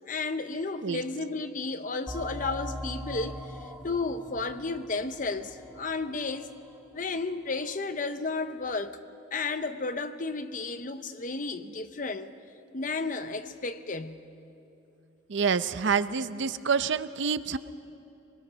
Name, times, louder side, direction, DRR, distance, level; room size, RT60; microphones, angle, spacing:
voice 1, 0.1-6.5 6.9-9.0 9.3-12.3 12.7-14.3, left 3 dB, 40° left, 0.8 m, -33 dB
sound 1, 2.1-7.3, equal, 5° right, 1.8 m, -41 dB
voice 2, 15.3-17.6, right 5 dB, 70° right, 0.6 m, -27 dB
23.5 x 20.5 x 6.2 m
head